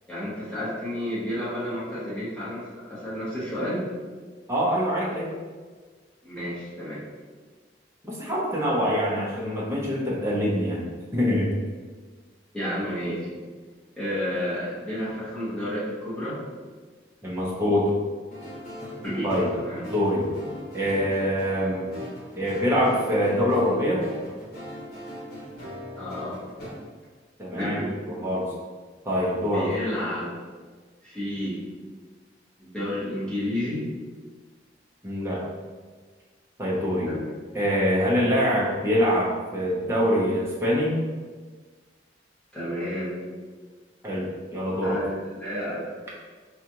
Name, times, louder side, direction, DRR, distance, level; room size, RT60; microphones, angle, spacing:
voice 1, 0.1-3.9 6.2-7.0 12.5-13.2 14.0-16.4 19.0-19.8 25.9-26.4 27.5-28.3 29.5-30.3 31.0-31.6 32.6-33.8 37.0-37.3 42.5-43.2 44.8-45.9, equal, 5° left, -12 dB, 1.1 m, -31 dB
voice 2, 4.5-5.3 8.0-10.9 11.1-11.5 17.2-17.9 19.2-19.5 19.8-20.3 20.7-21.9 22.4-24.0 27.4-27.8 28.1-28.5 29.0-29.7 35.0-35.4 36.6-37.1 37.5-41.0 44.0-45.0, equal, 15° right, -6 dB, 0.8 m, -24 dB
sound 1, 18.3-26.7, equal, 50° left, 1.2 m, -39 dB
4.9 x 2.4 x 2.9 m, 1.4 s
head